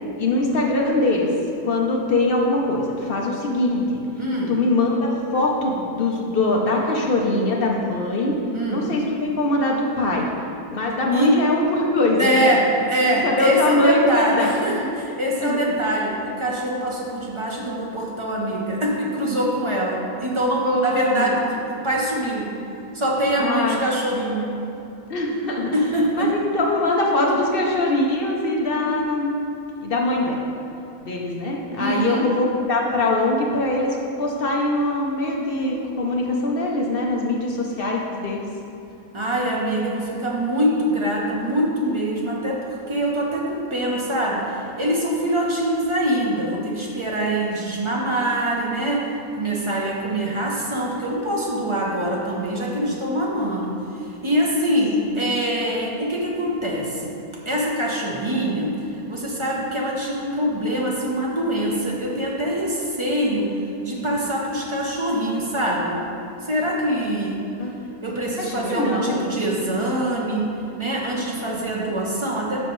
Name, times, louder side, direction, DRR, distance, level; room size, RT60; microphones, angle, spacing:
voice 1, 0.2-1.3 1.6-4.0 4.5-8.4 8.7-10.3 10.7-12.6 13.2-14.5 14.8-14.9 15.4-15.8 20.6-21.3 23.4-23.8 25.1-25.8 26.1-29.4 29.8-30.4 31.0-38.4 55.0-55.3 67.5-67.7 68.4-69.2, left 2 dB, 55° left, -1 dB, 0.6 m, -22 dB
voice 2, 4.2-4.5 8.5-8.9 11.1-11.4 12.2-21.4 21.7-22.5 22.9-24.5 25.7-26.3 31.8-32.3 39.1-49.1 49.3-57.1 57.5-58.8 59.1-63.5 63.8-66.0 66.4-67.4 68.0-70.4 70.8-72.6, right 1 dB, 45° right, -3 dB, 0.3 m, -24 dB
7.8 x 5.2 x 3.1 m, 2.7 s
omnidirectional pair, 1.6 m